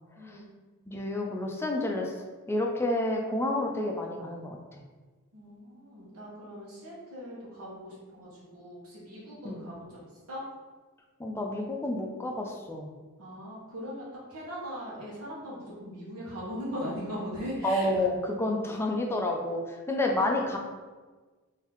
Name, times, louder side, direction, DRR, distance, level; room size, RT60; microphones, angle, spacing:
voice 1, 0.9-2.1 2.5-4.8 9.4-9.6 11.2-12.9 17.6-20.6, left 1 dB, 10° left, 1 dB, 0.4 m, -30 dB
voice 2, 5.3-10.4 13.2-18.0, equal, 80° right, -6 dB, 1.0 m, -39 dB
3.7 x 2.7 x 2.9 m, 1.3 s
head